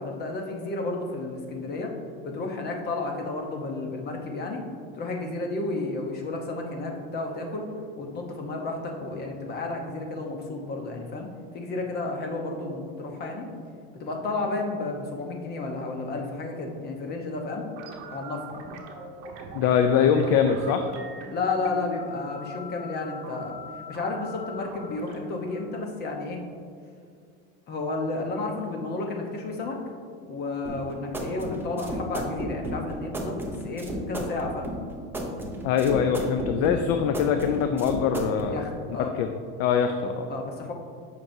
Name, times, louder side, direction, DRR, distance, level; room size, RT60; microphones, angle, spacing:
voice 1, 0.0-1.9 2.2-4.6 4.9-7.7 8.0-11.3 11.5-13.5 13.9-17.6 18.1-18.5 21.3-23.5 23.9-26.4 27.7-29.8 30.3-34.7 38.4-39.1 40.3-40.7, left 3 dB, 30° left, 2 dB, 0.9 m, -32 dB
sound 1, 17.8-26.7, equal, 55° right, 1.1 m, -42 dB
voice 2, 19.5-20.9 35.6-38.6 39.0-39.3 39.6-40.3, left 7 dB, 45° left, 7 dB, 0.4 m, -23 dB
sound 2, 30.6-38.5, right 1 dB, 5° right, 0.6 m, -33 dB
8.9 x 5.9 x 2.7 m, 2.2 s
cardioid pair, 160°, 34 cm